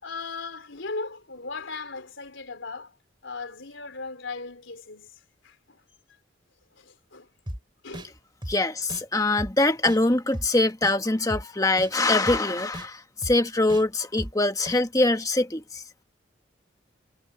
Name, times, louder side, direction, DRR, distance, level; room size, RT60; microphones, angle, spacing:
voice 1, 0.0-2.9 3.2-5.1 5.4-5.8 6.8-7.3 7.8-8.1, left 3 dB, 85° left, 3.5 m, -37 dB
sound 1, 7.5-7.6 7.9-8.1 8.4-8.5 8.9-9.0 9.4-9.5 9.9-10.0 10.3-10.5 10.8-10.9 11.3-11.4 11.8-11.9 12.3-12.4 12.7-12.9 13.2-13.3 13.7-13.8 14.2-14.3 14.7-14.8, equal, 25° right, 4.9 m, -35 dB
voice 2, 8.5-15.8, left 2 dB, 20° left, 1.4 m, -23 dB
head